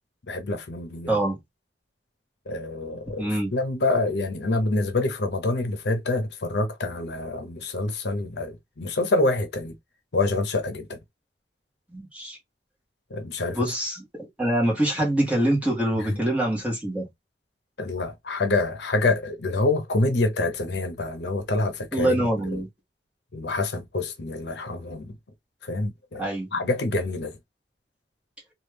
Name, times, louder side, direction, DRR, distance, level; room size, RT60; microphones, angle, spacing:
voice 1, 0.3-1.2 2.5-9.8 10.1-11.0 13.1-13.6 16.1-16.2 17.8-22.2 22.5-22.6 23.3-25.1 25.6-26.2 26.5-27.4, left 2 dB, 70° left, 0.7 m, -26 dB
voice 2, 1.1-1.4 3.2-3.5 11.9-12.4 13.5-17.1 21.9-22.7 26.2-26.7, right 1 dB, 10° right, 1.4 m, -25 dB
3.0 x 2.4 x 3.3 m
head